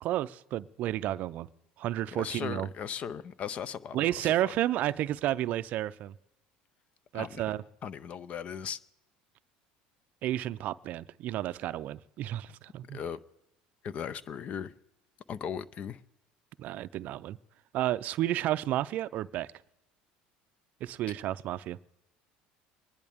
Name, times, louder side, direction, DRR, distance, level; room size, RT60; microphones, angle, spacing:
voice 1, 0.0-1.5 1.8-2.7 3.9-6.1 7.1-7.6 10.2-13.0 16.6-17.4 17.7-19.5 20.8-21.8, right 13 dB, 55° right, 0.4 m, -31 dB
voice 2, 2.1-4.5 7.1-8.8 12.9-13.2 13.8-14.7 15.3-16.0, left 7 dB, 45° left, 0.6 m, -38 dB
24.5 x 10.5 x 3.5 m
supercardioid pair, 110°, 3 cm